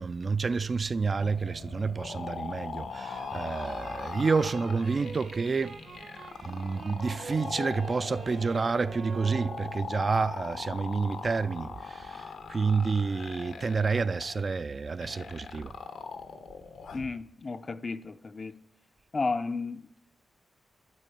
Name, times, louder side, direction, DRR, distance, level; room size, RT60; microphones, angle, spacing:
voice 1, 0.0-5.8 6.4-15.7, right 4 dB, 40° right, 0.4 m, -29 dB
sound 1, 1.2-17.1, left 5 dB, 85° left, 1.2 m, -41 dB
sound 2, 2.9-10.1, right 4 dB, 65° right, 1.0 m, -45 dB
voice 2, 16.9-18.6 19.1-20.0, left 3 dB, 35° left, 0.5 m, -33 dB
12.0 x 5.9 x 9.2 m
wide cardioid pair, 105°, 0 cm